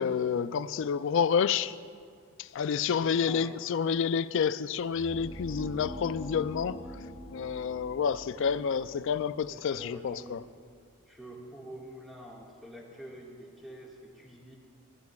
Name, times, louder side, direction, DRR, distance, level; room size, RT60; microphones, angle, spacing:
voice 1, 0.0-1.8 2.4-6.8 7.3-10.4, left 6 dB, 55° left, 0.3 m, -29 dB
voice 2, 3.0-3.6 8.3-8.6 9.5-10.4 11.1-14.6, equal, ahead, 1.7 m, -46 dB
sound 1, 4.8-10.7, left 1 dB, 30° left, 1.3 m, -44 dB
20.0 x 14.0 x 2.3 m
head